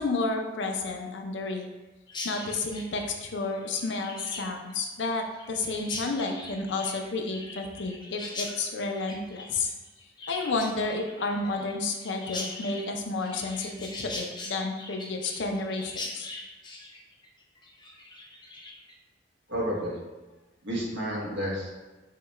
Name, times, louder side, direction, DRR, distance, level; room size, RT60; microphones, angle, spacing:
voice 1, 0.0-1.7 2.2-9.7 10.3-16.3, left 3 dB, 65° left, 3 dB, 0.5 m, -31 dB
Chirp tweet, 2.1-18.9, left 2 dB, 25° left, 0.6 m, -41 dB
voice 2, 19.5-20.0 20.6-21.7, equal, 75° right, -4 dB, 1.2 m, -30 dB
5.6 x 2.3 x 3.1 m, 1.2 s
head